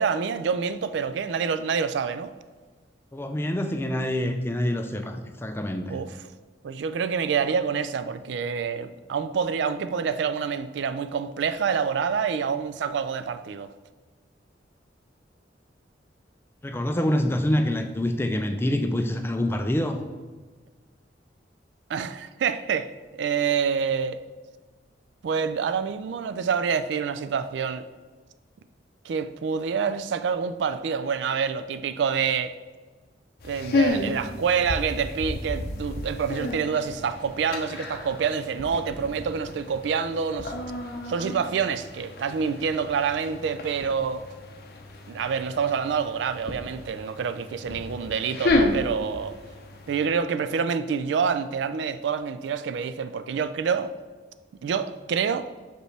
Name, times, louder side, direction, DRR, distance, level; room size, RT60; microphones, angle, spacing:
voice 1, 0.0-2.3 5.9-6.2 6.6-13.7 21.9-24.2 25.2-27.9 29.0-32.5 33.4-40.5 41.1-44.2 45.1-49.4 49.9-53.9 54.6-55.5, right 6 dB, 75° right, 0.3 m, -27 dB
voice 2, 3.1-6.0 16.6-20.0, left 1 dB, 15° left, 0.4 m, -26 dB
sound 1, 33.4-50.1, left 2 dB, 55° left, 0.6 m, -32 dB
6.1 x 5.2 x 3.3 m
head